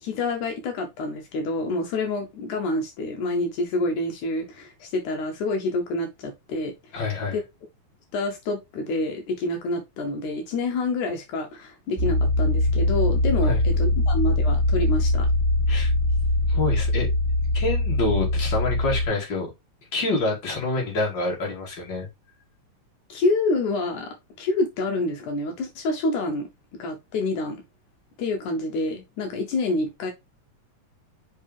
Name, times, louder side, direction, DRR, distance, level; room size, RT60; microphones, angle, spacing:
voice 1, 0.0-7.0 7.3-7.4 8.1-15.3 23.1-27.6 28.2-30.1, left 2 dB, 75° left, 2.4 m, -27 dB
voice 2, 6.9-7.4 13.4-13.6 15.7-15.9 16.5-17.1 17.5-19.5 19.9-22.1, left 3 dB, 35° left, 3.0 m, -27 dB
sound 1, 12.0-19.1, left 2 dB, 5° left, 1.2 m, -22 dB
5.3 x 5.2 x 3.5 m
omnidirectional pair, 3.5 m